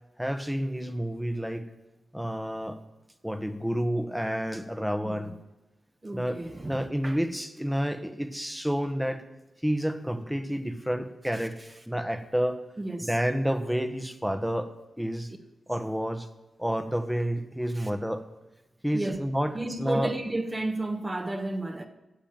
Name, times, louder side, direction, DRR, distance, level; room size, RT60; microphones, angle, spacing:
voice 1, 0.2-1.6 2.1-2.8 3.2-5.3 6.1-9.2 9.6-11.6 11.9-12.6 13.0-14.7 15.0-15.3 15.7-16.3 16.6-18.2 18.8-20.1, equal, 5° right, 1.5 m, -29 dB
voice 2, 6.0-6.8 7.0-7.2 12.8-13.1 17.8-17.9 18.9-19.2 19.5-21.9, right 2 dB, 30° right, 1.6 m, -32 dB
13.0 x 7.2 x 9.0 m
supercardioid pair, 45°, 0 cm